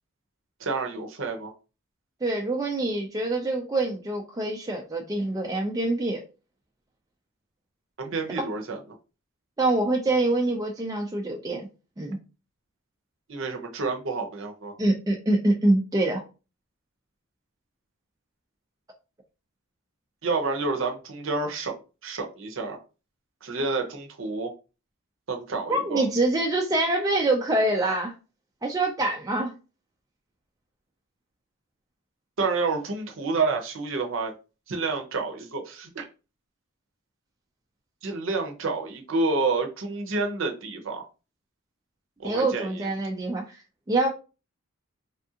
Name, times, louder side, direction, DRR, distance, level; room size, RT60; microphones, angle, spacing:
voice 1, 0.6-1.5 8.0-8.8 13.3-14.7 20.2-22.8 23.4-24.5 25.3-26.0 32.4-34.3 34.7-36.1 38.0-41.1 42.2-42.9, right 3 dB, 60° right, 0.7 m, -29 dB
voice 2, 2.2-6.2 9.6-11.6 12.0-12.2 14.8-16.2 25.7-28.1 28.6-29.5 42.2-43.6 43.9-44.1, right 2 dB, 15° right, 0.3 m, -25 dB
3.4 x 2.4 x 2.7 m
head